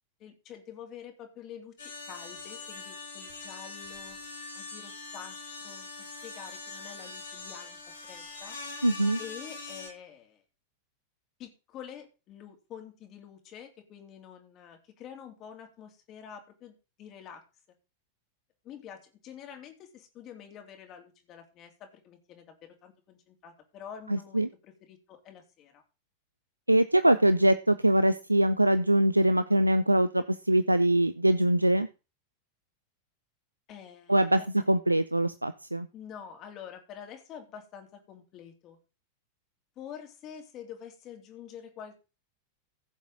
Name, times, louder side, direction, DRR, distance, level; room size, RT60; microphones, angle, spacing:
voice 1, 0.2-4.2 4.5-8.6 9.2-10.4 11.4-17.4 18.6-25.8 33.7-34.2 35.9-38.8 39.8-42.0, left 8 dB, 35° left, 4 dB, 2.9 m, -47 dB
sound 1, 1.8-9.9, left 3 dB, 70° left, 5.1 m, -43 dB
voice 2, 8.8-9.2 24.1-24.5 26.7-31.9 34.1-35.9, right 1 dB, 85° right, 13 dB, 0.5 m, -23 dB
15.5 x 7.2 x 4.0 m, 0.31 s
figure-of-eight pair, 90°, 0 cm